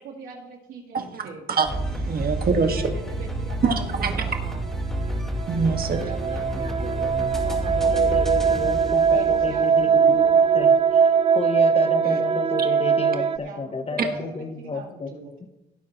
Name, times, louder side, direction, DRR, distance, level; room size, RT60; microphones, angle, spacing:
voice 1, 0.0-1.5 2.6-4.6 5.8-8.0 9.1-10.8 13.2-15.3, right 4 dB, 80° right, -4 dB, 3.3 m, -42 dB
voice 2, 0.9-2.8 3.6-4.2 5.5-6.0 12.0-12.2, right 5 dB, 50° right, 4 dB, 1.8 m, -25 dB
sound 1, 1.7-10.1, right 1 dB, ahead, 4.5 m, -30 dB
sound 2, 5.0-13.4, right 6 dB, 25° right, 0.4 m, -21 dB
voice 3, 7.8-10.7 11.3-15.1, left 3 dB, 30° left, 8 dB, 1.1 m, -31 dB
18.0 x 9.2 x 3.1 m, 0.96 s
cardioid pair, 90°, 20 cm